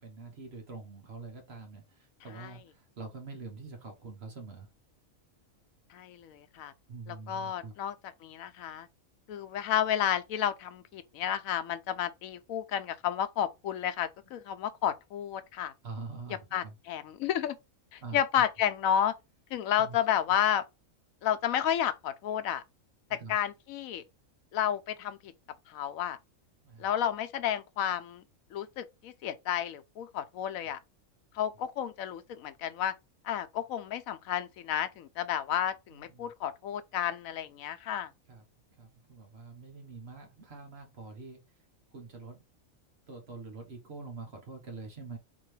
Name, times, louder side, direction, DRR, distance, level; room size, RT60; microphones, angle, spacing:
voice 1, 0.0-4.7 6.9-7.7 15.8-16.7 18.0-18.2 19.8-20.0 23.1-23.4 26.6-26.9 30.6-30.7 35.9-36.3 38.3-38.4 38.8-41.4 41.9-42.4 43.1-45.2, right 4 dB, 50° right, 1.4 m, -45 dB
voice 2, 5.9-6.7 7.1-7.9 8.2-8.9 9.3-15.7 16.5-17.6 17.9-19.1 19.5-20.6 21.2-22.6 23.1-24.0 24.5-25.3 25.7-26.2 26.8-28.2 28.5-30.8 31.3-32.9 33.2-38.1, left 10 dB, 90° left, 1.0 m, -31 dB
3.8 x 3.0 x 3.2 m
omnidirectional pair, 1.4 m